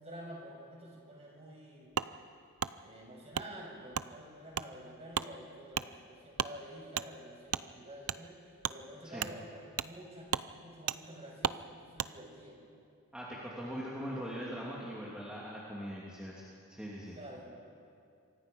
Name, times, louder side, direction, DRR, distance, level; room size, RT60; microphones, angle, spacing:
voice 1, 0.0-1.9 2.8-12.6 17.1-17.4, right 1 dB, 30° right, -2 dB, 6.7 m, -49 dB
Wood, 1.9-2.1 2.6-2.7 3.3-3.5 3.9-4.1 4.5-4.7 5.1-5.3 5.7-5.9 6.3-6.5 6.9-7.1 7.5-7.6 8.0-8.2 8.6-8.8 9.2-9.3 9.8-9.9 10.3-10.5 10.9-11.0 11.4-11.6 12.0-12.1, right 8 dB, 85° right, 0.6 m, -34 dB
voice 2, 13.1-17.2, equal, 5° right, -7 dB, 3.0 m, -41 dB
27.0 x 25.0 x 5.6 m, 2.4 s
head